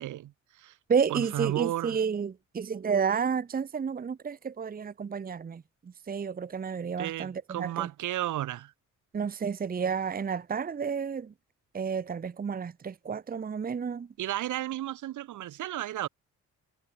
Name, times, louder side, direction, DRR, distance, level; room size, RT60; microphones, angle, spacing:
voice 1, 0.0-0.7 1.1-2.0 7.0-8.7 14.2-16.1, right 13 dB, 80° right, 2.6 m, -33 dB
voice 2, 0.9-5.6 6.1-7.9 9.1-11.3 11.7-14.1, right 6 dB, 30° right, 0.9 m, -31 dB
cardioid pair, 90°, 30 cm